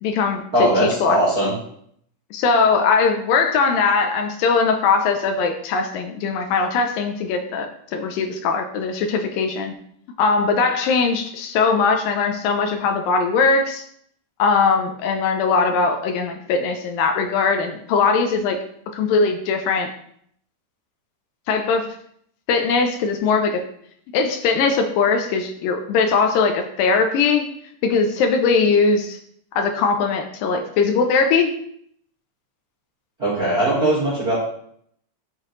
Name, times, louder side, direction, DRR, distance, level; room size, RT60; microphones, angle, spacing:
voice 1, 0.0-1.2 2.3-9.7 10.2-13.8 14.4-18.6 18.9-19.9 21.5-21.9 22.5-23.6 24.1-27.5 27.8-29.2 29.6-31.5, left 4 dB, 85° left, 4 dB, 2.0 m, -20 dB
voice 2, 0.5-1.5 33.2-34.4, right 1 dB, 60° right, -8 dB, 0.9 m, -19 dB
11.5 x 5.0 x 3.1 m, 0.67 s
omnidirectional pair, 4.8 m